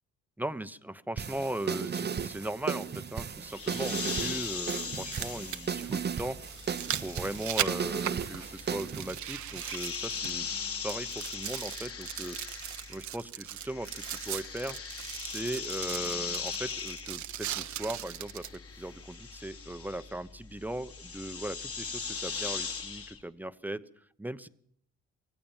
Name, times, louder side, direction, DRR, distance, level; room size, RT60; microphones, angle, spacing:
voice 1, 0.4-6.4 7.0-10.5 10.8-14.8 15.2-23.8 24.2-24.5, right 1 dB, 5° right, 12 dB, 0.9 m, -38 dB
sound 1, 1.2-9.2, right 6 dB, 35° right, 0.9 m, -35 dB
sound 2, 1.6-1.7 3.6-3.7 4.9-10.6 10.9-18.6 19.1-19.2, right 11 dB, 70° right, 1.1 m, -38 dB
sound 3, 3.5-13.2 13.5-23.2, left 5 dB, 50° left, 3.2 m, -40 dB
24.5 x 16.5 x 7.3 m, 0.64 s
cardioid pair, 90°, 30 cm